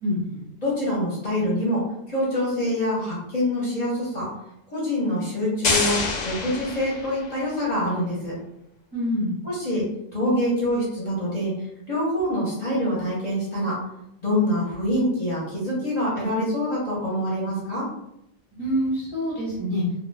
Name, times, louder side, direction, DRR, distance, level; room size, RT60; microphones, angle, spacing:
voice 1, 0.0-0.4 8.9-9.4 18.5-19.8, equal, 25° right, -9 dB, 0.6 m, -26 dB
voice 2, 0.6-4.3 4.7-6.0 6.2-8.4 9.4-9.9 10.1-11.5 11.9-13.8 14.2-17.9, left 1 dB, 35° left, -7 dB, 0.9 m, -25 dB
sound 1, 5.6-7.5, left 3 dB, 70° left, 0.4 m, -26 dB
2.3 x 2.1 x 3.3 m, 0.80 s
omnidirectional pair, 1.3 m